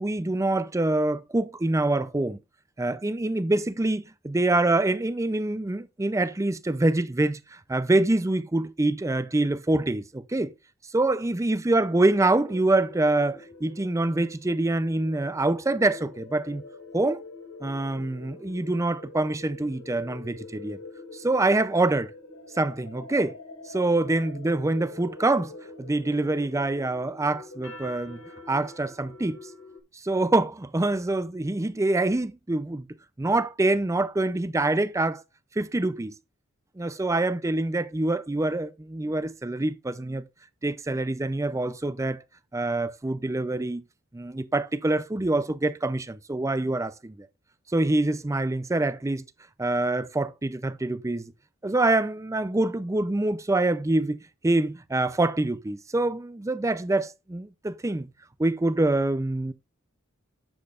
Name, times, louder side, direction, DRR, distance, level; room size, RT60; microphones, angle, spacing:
voice 1, 0.0-2.4 2.8-10.5 10.9-16.6 16.9-17.2 17.6-20.8 21.1-22.1 22.6-23.4 23.7-28.2 28.5-29.4 29.9-32.9 33.2-35.2 35.6-36.1 36.8-40.2 40.6-42.2 42.5-43.8 44.1-47.3 47.7-49.2 49.6-51.3 51.6-54.2 54.4-58.1 58.4-59.5, right 2 dB, 15° right, 0.5 m, -25 dB
sound 1, 12.1-29.8, left 3 dB, 85° left, 2.2 m, -45 dB
10.5 x 7.4 x 2.4 m
head